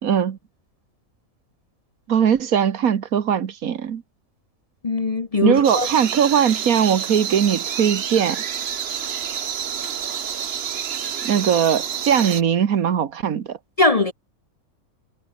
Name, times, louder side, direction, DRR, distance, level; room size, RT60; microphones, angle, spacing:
voice 1, 0.0-0.4 2.1-4.0 5.4-8.4 11.2-13.6, right 8 dB, 75° right, 1.6 m, -20 dB
voice 2, 4.8-5.9 13.8-14.1, left 3 dB, 35° left, 0.7 m, -20 dB
sound 1, 5.6-12.4, right 8 dB, 50° right, 1.0 m, -28 dB
omnidirectional pair, 1.5 m